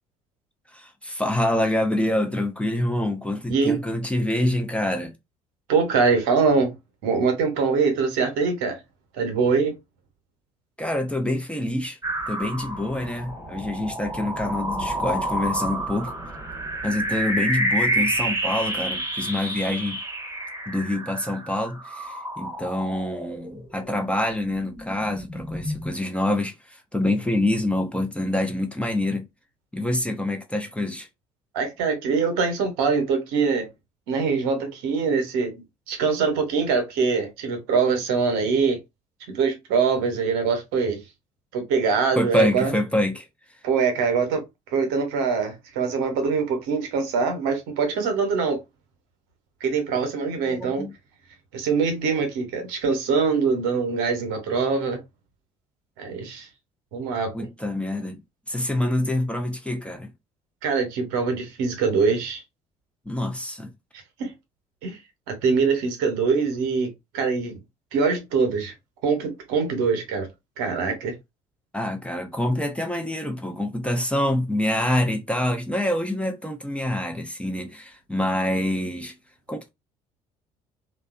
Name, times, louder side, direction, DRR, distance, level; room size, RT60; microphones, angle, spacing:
voice 1, 0.7-5.1 10.8-12.0 12.3-16.1 16.8-20.0 20.7-29.3 29.7-31.1 42.1-43.3 50.4-51.0 57.3-58.2 58.5-60.1 63.1-63.7 71.7-79.1 79.5-79.7, left 1 dB, 5° left, 0.5 m, -26 dB
voice 2, 5.7-6.7 7.0-8.8 9.2-9.7 31.5-33.7 34.1-38.8 39.3-41.0 41.5-42.7 43.6-44.4 44.7-48.6 49.6-50.9 51.5-55.0 56.0-56.5 56.9-57.3 60.6-62.4 64.2-64.3 64.8-65.0 65.3-67.6 67.9-68.7 69.0-70.3 70.6-71.1, right 5 dB, 70° right, 0.8 m, -23 dB
sound 1, 12.0-23.9 24.3-25.9, right 1 dB, 15° right, 0.9 m, -29 dB
2.6 x 2.2 x 2.4 m
hypercardioid pair, 55°, 18 cm